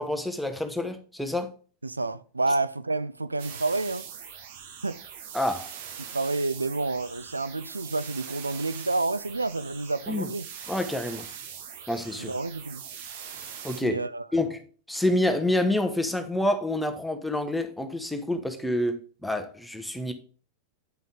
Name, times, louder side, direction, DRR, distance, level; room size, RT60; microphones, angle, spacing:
voice 1, 0.0-1.5 5.3-5.7 10.1-10.3 10.7-11.3 11.9-12.3 13.6-14.0 14.3-14.6 14.9-20.1, left 1 dB, 5° left, 0.9 m, -27 dB
voice 2, 1.8-4.1 4.8-5.0 6.1-10.5 12.2-12.8 13.8-14.2, right 3 dB, 80° right, 0.4 m, -29 dB
sound 1, 3.4-13.8, right 8 dB, 55° right, 1.1 m, -42 dB
9.2 x 5.5 x 3.7 m
figure-of-eight pair, 90°, 0 cm